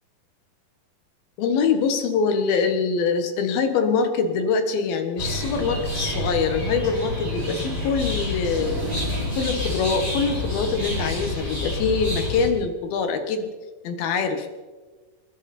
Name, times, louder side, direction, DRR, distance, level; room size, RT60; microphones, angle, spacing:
voice 1, 1.4-8.8 9.4-13.5 13.8-14.5, left 5 dB, 85° left, 7 dB, 3.3 m, -24 dB
sound 1, 5.2-12.5, left 1 dB, 15° left, 5.3 m, -28 dB
28.0 x 11.0 x 4.3 m, 1.3 s
omnidirectional pair, 4.1 m